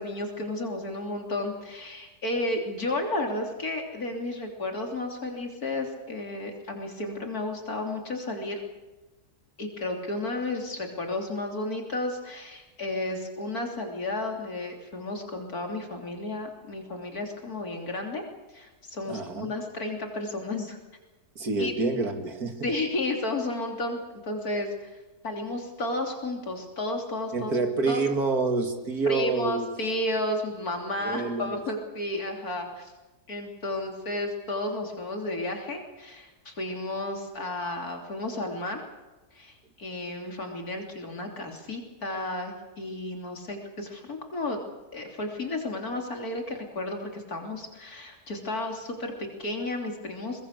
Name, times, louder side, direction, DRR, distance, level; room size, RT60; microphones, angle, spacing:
voice 1, 0.0-8.6 9.6-18.2 18.5-20.8 21.6-21.7 22.6-27.5 27.9-28.0 29.1-32.9 33.3-38.8 39.3-44.6 44.9-50.4, left 2 dB, 70° left, 2 dB, 3.7 m, -32 dB
voice 2, 19.1-19.5 21.4-22.7 27.3-29.7 31.0-31.6, right 3 dB, 75° right, 6 dB, 2.8 m, -27 dB
23.0 x 21.5 x 6.6 m, 1.1 s
omnidirectional pair, 1.6 m